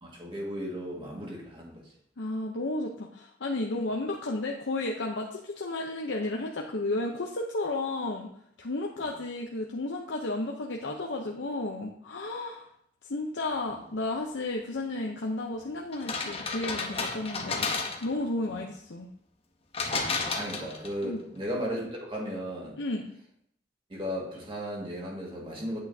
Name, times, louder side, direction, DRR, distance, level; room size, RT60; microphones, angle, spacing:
voice 1, 0.0-1.8 13.7-13.8 18.5-18.6 19.9-22.8 23.9-25.8, equal, 30° right, -2 dB, 1.9 m, -36 dB
voice 2, 2.2-8.3 8.6-12.7 13.1-17.7 18.0-19.1 21.0-21.2 22.8-23.1, left 2 dB, 85° left, 0 dB, 0.8 m, -33 dB
sound 1, 15.9-18.2 19.7-21.0, left 4 dB, 35° left, 0.9 m, -32 dB
8.5 x 8.3 x 2.8 m, 0.70 s
head